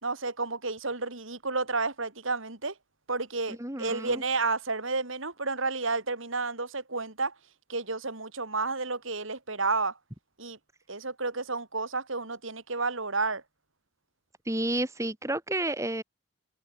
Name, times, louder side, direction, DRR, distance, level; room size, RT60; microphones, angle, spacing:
voice 1, 0.0-2.7 3.1-7.3 7.7-9.9 10.4-10.6 10.9-13.4, right 3 dB, 70° right, 4.1 m, -31 dB
voice 2, 3.5-4.2 14.5-16.0, right 1 dB, 15° right, 2.0 m, -31 dB
head